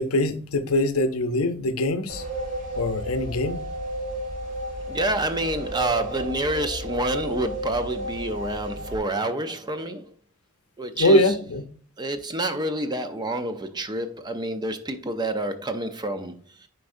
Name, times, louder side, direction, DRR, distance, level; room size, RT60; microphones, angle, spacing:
voice 1, 0.0-2.2 2.8-3.6 11.0-11.6, left 1 dB, 80° left, 0.7 m, -22 dB
sound 1, 2.1-9.0, equal, 35° right, 3.0 m, -33 dB
voice 2, 4.9-10.1 10.8-11.4 12.0-16.7, right 1 dB, 20° right, 0.6 m, -28 dB
9.7 x 4.6 x 2.6 m
head